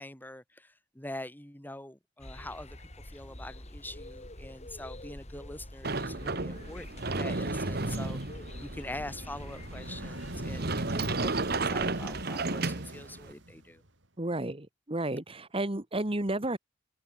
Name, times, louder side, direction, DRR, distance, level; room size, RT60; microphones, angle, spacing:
voice 1, 0.0-2.8 3.0-13.8, left 1 dB, 10° left, 3.1 m, -44 dB
sound 1, 2.2-12.2, left 1 dB, 35° left, 4.7 m, -45 dB
Sliding door, 5.8-13.3, right 3 dB, 55° right, 1.9 m, -33 dB
sound 2, 9.6-14.1, right 1 dB, 85° right, 7.2 m, -44 dB
voice 2, 14.2-16.6, right 1 dB, 30° right, 1.9 m, -32 dB
open air
head